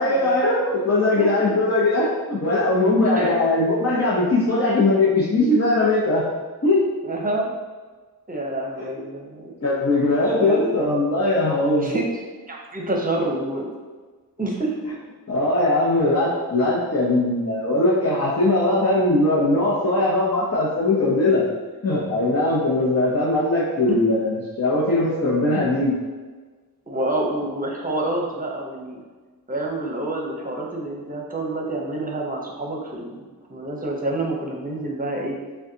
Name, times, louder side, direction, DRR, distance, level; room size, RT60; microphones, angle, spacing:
voice 1, 0.0-6.2 6.6-6.8 8.8-9.0 9.6-11.9 15.3-21.4 21.8-25.9, left 2 dB, 45° left, -7 dB, 0.9 m, -20 dB
voice 2, 3.0-3.4 7.0-7.5 8.3-9.5 10.3-10.8 11.8-13.7 14.4-14.8 23.9-24.0 26.9-29.0 29.5-33.2 33.5-35.4, right 2 dB, 25° right, -1 dB, 0.8 m, -27 dB
6.2 x 2.3 x 2.8 m, 1.4 s
wide cardioid pair, 80°, 36 cm